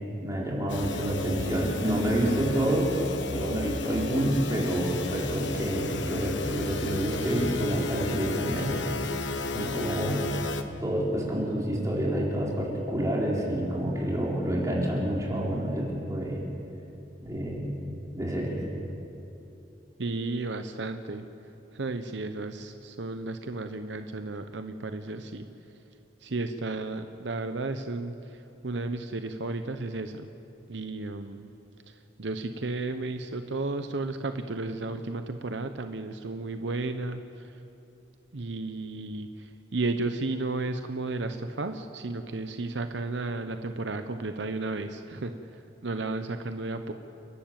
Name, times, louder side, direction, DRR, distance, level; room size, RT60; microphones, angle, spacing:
voice 1, 0.2-2.9 3.3-8.8 9.5-10.3 10.8-16.4 17.2-17.7 18.1-18.6, right 1 dB, 20° right, -4 dB, 4.2 m, -28 dB
sound 1, 0.7-10.6, left 3 dB, 80° left, 1.2 m, -33 dB
voice 2, 20.0-21.3 21.7-25.4 26.2-30.3 30.7-31.5 32.2-37.2 38.3-45.3 45.8-46.9, right 2 dB, 75° right, 8 dB, 0.8 m, -33 dB
30.0 x 12.0 x 7.6 m, 2.8 s
head